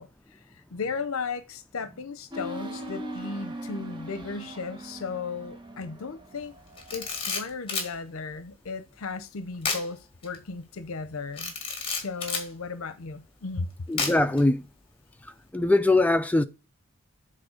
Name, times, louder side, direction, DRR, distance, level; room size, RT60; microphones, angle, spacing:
voice 1, 0.0-6.5 6.9-11.5 11.9-13.7, left 4 dB, 75° left, 0.6 m, -35 dB
sound 1, 2.3-7.4, right 1 dB, 20° right, 1.1 m, -40 dB
Camera, 6.8-7.9 9.6-9.9 10.2-10.4 11.4-12.5 14.0-14.4, left 4 dB, 25° left, 2.0 m, -30 dB
voice 2, 13.9-14.6 15.2-16.4, left 2 dB, 5° left, 0.4 m, -22 dB
7.5 x 4.3 x 6.4 m
head